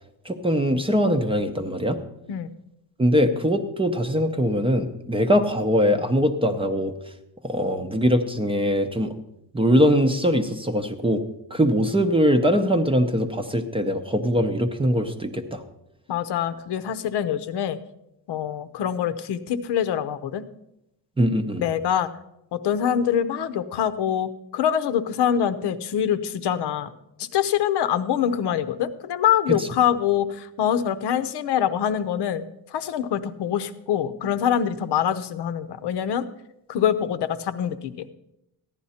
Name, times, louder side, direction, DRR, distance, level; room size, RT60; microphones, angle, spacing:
voice 1, 0.2-2.0 3.0-6.9 7.4-9.1 9.5-11.2 11.5-15.6 21.2-21.6 29.5-29.7, equal, 15° right, 6 dB, 0.6 m, -22 dB
voice 2, 16.1-17.8 18.3-20.4 21.6-22.1 22.5-26.9 27.2-32.4 32.7-36.2 36.7-37.9, left 9 dB, 75° left, 11 dB, 0.8 m, -24 dB
15.0 x 10.5 x 4.3 m, 0.84 s
cardioid pair, 165°, 42 cm